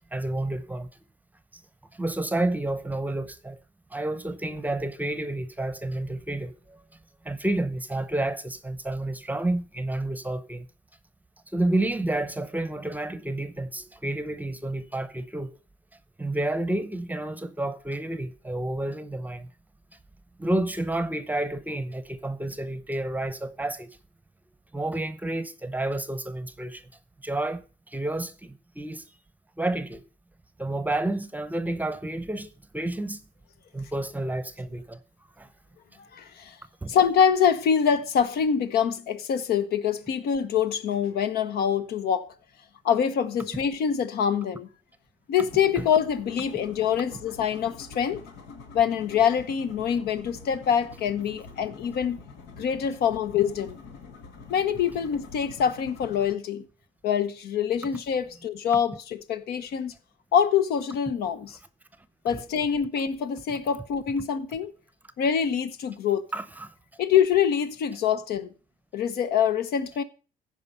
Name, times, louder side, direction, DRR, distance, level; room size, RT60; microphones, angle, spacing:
voice 1, 0.1-0.9 1.9-3.6 3.9-6.8 7.2-10.7 11.5-15.5 16.2-19.5 20.4-23.9 24.7-26.9 27.2-29.0 29.6-30.0 30.6-33.2 33.7-35.0 35.4-35.5 36.8-37.0 45.8-45.9 62.3-62.4 66.3-66.7, right 1 dB, 10° right, 0.8 m, -30 dB
voice 2, 36.1-36.6 36.9-42.3 42.8-44.7 45.3-48.2 48.7-52.2 52.6-53.8 54.5-56.6 57.0-59.9 60.3-61.6 62.2-64.7 65.2-66.3 67.0-68.5 68.9-70.0, left 8 dB, 70° left, 1.0 m, -25 dB
sound 1, 45.4-56.3, left 4 dB, 85° left, 1.8 m, -46 dB
15.0 x 5.1 x 5.6 m
cardioid pair, 110°, 17 cm